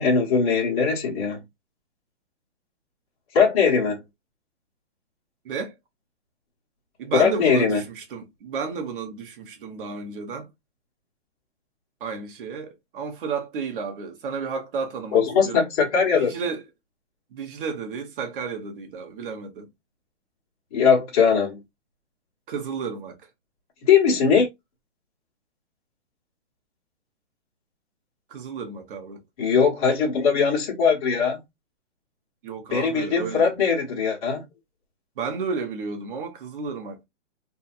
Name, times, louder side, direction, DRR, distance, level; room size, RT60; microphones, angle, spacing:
voice 1, 0.0-1.4 3.3-4.0 7.2-7.8 15.1-16.3 20.7-21.6 23.9-24.5 29.4-31.4 32.7-34.4, left 6 dB, 30° left, 1.2 m, -20 dB
voice 2, 7.0-10.5 12.0-15.6 16.1-16.6 17.3-19.7 22.5-23.2 28.3-29.2 32.4-33.5 35.2-37.0, right 5 dB, 50° right, 1.1 m, -32 dB
2.7 x 2.7 x 2.4 m
hypercardioid pair, 150°, 35 cm